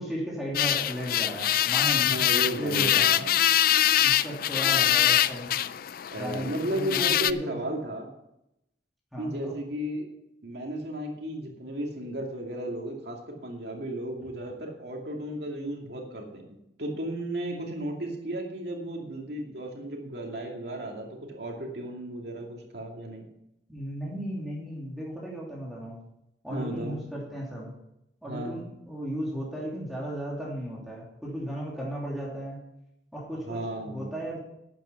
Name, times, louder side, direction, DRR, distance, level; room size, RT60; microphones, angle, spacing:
voice 1, 0.0-2.2 2.5-3.1 4.0-5.5 6.1-7.7 9.1-9.6 23.7-26.0 26.4-27.7 28.2-32.6 33.1-34.4, equal, ahead, -5 dB, 2.8 m, -35 dB
sound 1, 0.5-7.3, left 12 dB, 55° left, 0.4 m, -24 dB
voice 2, 2.1-3.3 6.1-8.1 9.2-10.1 10.4-23.2 26.5-27.0 28.2-28.6 33.5-34.2, right 1 dB, 65° right, 1 dB, 2.4 m, -34 dB
11.5 x 8.9 x 5.7 m, 0.83 s
head